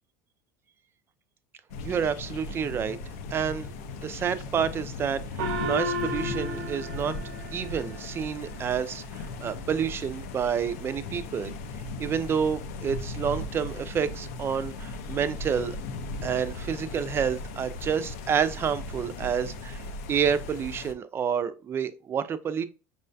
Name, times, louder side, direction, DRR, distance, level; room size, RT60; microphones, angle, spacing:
sound 1, 1.7-20.9, left 3 dB, 80° left, 0.5 m, -37 dB
voice 1, 1.8-3.0 3.3-3.7 4.0-7.1 7.5-11.5 12.0-15.8 16.2-19.8 20.1-22.7, right 7 dB, 30° right, 0.4 m, -29 dB
Gong, 5.4-8.3, right 1 dB, 80° right, 0.6 m, -33 dB
5.3 x 2.2 x 2.5 m
supercardioid pair, 110°, 8 cm